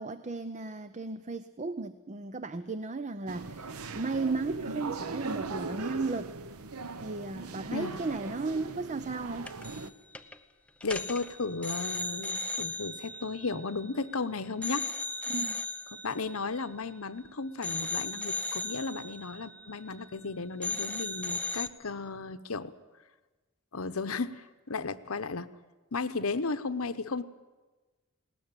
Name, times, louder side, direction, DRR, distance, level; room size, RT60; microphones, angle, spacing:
voice 1, 0.0-6.3 7.0-9.6 15.3-15.6, right 3 dB, 35° right, 12 dB, 0.6 m, -35 dB
sound 1, 3.3-9.9, right 3 dB, 85° right, 0.9 m, -39 dB
sound 2, 9.5-9.9 10.1-10.4 10.8-14.2 14.6-17.2 17.6-20.3 20.6-21.7, left 3 dB, 5° left, 1.0 m, -37 dB
voice 2, 10.8-14.9 16.0-22.7 23.7-25.5 25.9-27.2, left 4 dB, 70° left, 12 dB, 0.9 m, -34 dB
20.5 x 18.5 x 9.0 m, 1.2 s
head